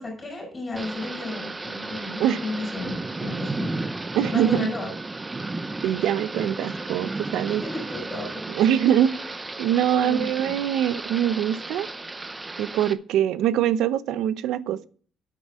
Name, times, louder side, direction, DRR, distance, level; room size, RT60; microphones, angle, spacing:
voice 1, 0.0-3.7 4.3-4.9 7.5-8.5 9.9-10.6, left 2 dB, 15° left, 5.7 m, -33 dB
Thunder / Rain, 0.8-12.9, right 2 dB, 15° right, 0.7 m, -34 dB
voice 2, 4.1-4.7 5.8-7.6 8.6-9.1 9.6-11.9 12.6-14.9, right 10 dB, 80° right, 0.7 m, -23 dB
9.8 x 8.4 x 5.1 m
cardioid pair, 155°, 0 cm